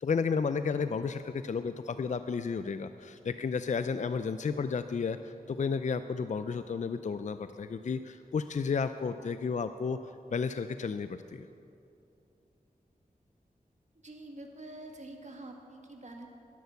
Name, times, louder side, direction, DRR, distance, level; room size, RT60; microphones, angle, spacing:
voice 1, 0.0-10.0 10.3-11.5, left 5 dB, 50° left, 11 dB, 0.4 m, -32 dB
voice 2, 14.0-16.3, right 2 dB, 50° right, 2 dB, 1.6 m, -46 dB
11.0 x 10.5 x 7.0 m, 2.6 s
wide cardioid pair, 60°, 16 cm